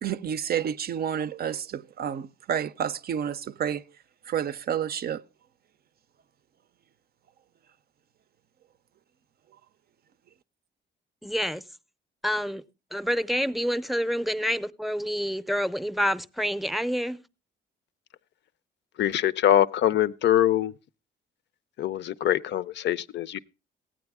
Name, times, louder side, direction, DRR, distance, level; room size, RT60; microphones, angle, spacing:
voice 1, 0.0-3.8 4.3-5.2, right 8 dB, 50° right, 0.5 m, -30 dB
voice 2, 11.2-11.6 12.2-12.6 12.9-17.2, equal, ahead, 0.6 m, -28 dB
voice 3, 19.0-20.7 21.8-23.4, left 11 dB, 65° left, 0.5 m, -23 dB
15.5 x 8.9 x 3.5 m
cardioid pair, 90°, 20 cm